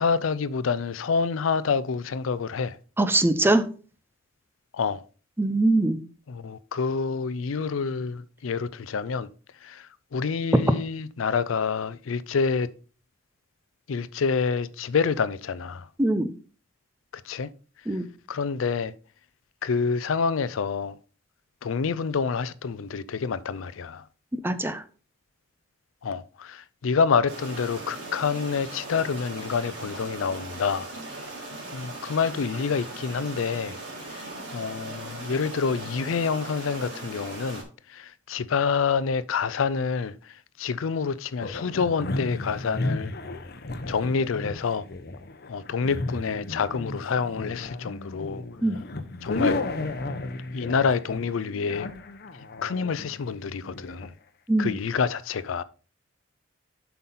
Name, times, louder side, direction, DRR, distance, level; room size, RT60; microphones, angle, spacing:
voice 1, 0.0-2.8 4.7-5.0 6.3-9.3 9.6-9.9 10.1-12.7 13.9-15.9 17.3-17.5 18.3-18.9 19.6-21.0 21.6-24.0 26.0-30.9 31.7-33.8 34.1-34.2 34.5-37.6 37.9-40.2 40.6-43.1 43.9-44.9 45.5-48.4 49.2-49.6 50.5-51.9 52.6-54.1 54.6-55.6, left 5 dB, 85° left, 0.5 m, -27 dB
voice 2, 3.0-3.7 5.4-6.0 16.0-16.3 17.9-18.0 24.4-24.8 48.6-48.8 54.5-54.8, right 2 dB, 10° right, 0.6 m, -22 dB
sound 1, 27.3-37.6, right 2 dB, 60° right, 3.8 m, -39 dB
sound 2, 41.4-54.1, left 2 dB, 55° left, 0.8 m, -34 dB
7.5 x 5.8 x 4.1 m
head